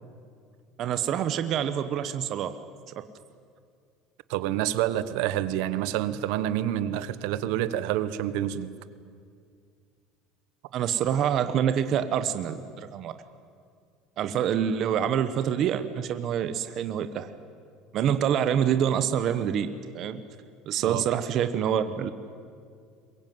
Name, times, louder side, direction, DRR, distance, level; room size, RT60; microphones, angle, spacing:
voice 1, 0.8-2.6 2.9-3.1 10.7-13.1 14.2-17.3 17.9-20.2 20.7-22.1, right 9 dB, 35° right, 10 dB, 0.9 m, -26 dB
voice 2, 4.3-8.8 20.8-21.0, right 12 dB, 65° right, 14 dB, 0.9 m, -28 dB
23.0 x 21.5 x 9.3 m, 2.2 s
cardioid pair, 180°, 0 cm